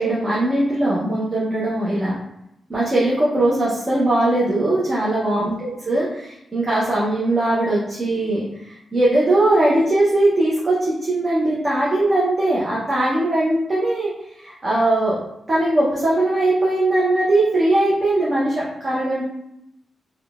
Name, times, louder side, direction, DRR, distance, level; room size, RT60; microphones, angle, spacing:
voice 1, 0.0-2.1 2.7-8.7 8.9-14.1 14.4-15.2 15.5-19.2, right 1 dB, 35° right, -6 dB, 0.6 m, -20 dB
3.5 x 2.2 x 2.3 m, 0.81 s
cardioid pair, 95°, 0 cm